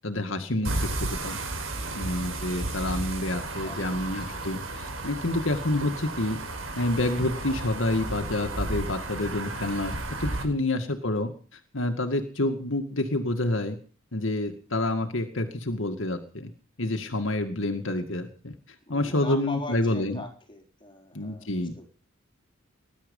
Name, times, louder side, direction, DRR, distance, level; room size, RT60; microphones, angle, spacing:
voice 1, 0.0-1.4 1.9-6.4 6.8-13.8 14.1-16.5 16.8-18.5 18.9-20.2 21.1-21.7, left 1 dB, 70° left, 6 dB, 2.2 m, -28 dB
sound 1, 0.6-10.4, right 2 dB, 85° right, 5.7 m, -33 dB
voice 2, 1.7-2.2 3.6-4.1 4.7-4.8 10.4-10.5 18.9-21.9, left 1 dB, 25° left, 3 dB, 4.4 m, -42 dB
20.5 x 11.5 x 5.5 m, 0.40 s
head